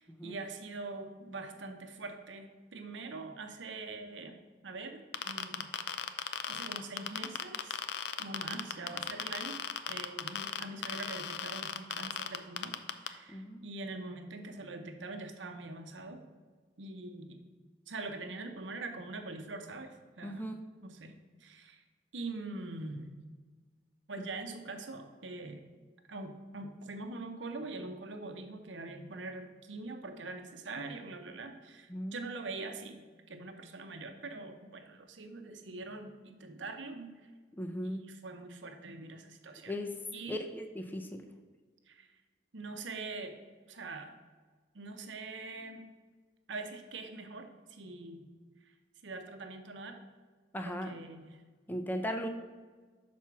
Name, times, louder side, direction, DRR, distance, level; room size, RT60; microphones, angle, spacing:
voice 1, 0.0-5.0 5.3-6.0 6.5-7.8 8.2-9.6 9.9-12.8 13.0-16.2 16.8-17.4 17.9-19.9 20.2-20.4 20.8-21.1 21.4-21.8 22.1-23.1 24.1-25.6 26.1-33.0 33.3-37.1 37.8-39.7 40.1-40.4 41.9-42.1 42.5-43.4 43.7-44.1 44.7-45.8 46.5-48.3 49.0-50.0 50.6-51.3, right 3 dB, 85° right, 6 dB, 0.8 m, -43 dB
sound 1, 5.1-13.1, left 8 dB, 65° left, 0.4 m, -36 dB
voice 2, 13.3-13.6 20.2-20.6 31.9-32.2 37.6-38.0 39.7-40.0 40.3-41.2 50.5-50.9 51.7-52.3, equal, 10° left, 4 dB, 0.5 m, -37 dB
5.9 x 4.3 x 6.0 m, 1.4 s
head